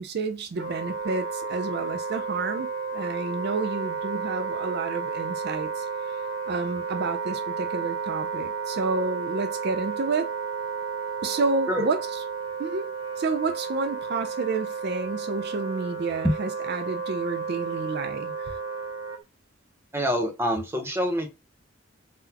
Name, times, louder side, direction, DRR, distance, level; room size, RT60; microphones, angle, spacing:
voice 1, 0.0-2.7 2.9-6.1 6.5-10.3 11.2-12.0 12.6-12.9 13.2-18.5, right 3 dB, 55° right, 0.4 m, -30 dB
Wind instrument woodwind instrument, 0.6-19.2, right 5 dB, 90° right, 0.8 m, -32 dB
voice 2, 19.9-21.3, equal, 15° right, 0.7 m, -25 dB
3.9 x 2.1 x 2.8 m
head